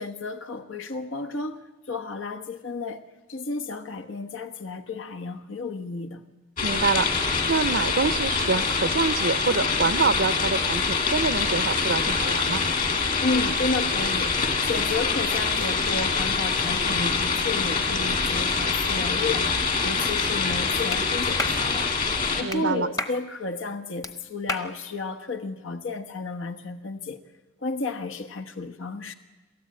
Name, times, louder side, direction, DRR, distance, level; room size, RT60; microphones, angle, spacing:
voice 1, 0.0-1.6 1.9-3.0 3.3-6.2 13.2-19.5 19.8-21.9 22.4-27.2 27.6-29.1, left 3 dB, 80° left, 1.2 m, -32 dB
sound 1, 6.6-22.4, left 4 dB, 40° left, 2.1 m, -25 dB
voice 2, 6.6-12.6 22.4-22.9, right 4 dB, 60° right, 0.6 m, -26 dB
Clapping, 20.9-21.0 21.4-21.6 22.5-22.6 23.0-23.2 24.0-24.1 24.5-24.7, left 2 dB, 15° left, 0.9 m, -30 dB
28.0 x 13.5 x 8.7 m
head